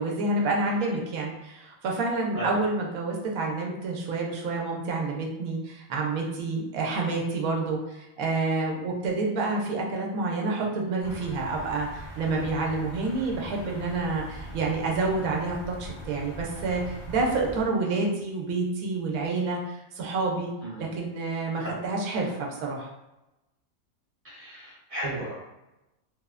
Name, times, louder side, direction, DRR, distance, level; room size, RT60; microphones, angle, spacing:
voice 1, 0.0-20.5 20.8-22.9, right 3 dB, 90° right, -1 dB, 1.0 m, -28 dB
sound 1, 11.0-17.7, equal, 50° left, 0.7 m, -41 dB
voice 2, 20.6-20.9 21.6-21.8 24.2-25.5, right 1 dB, 30° right, -8 dB, 0.9 m, -35 dB
3.1 x 2.0 x 2.3 m, 0.96 s
omnidirectional pair, 1.4 m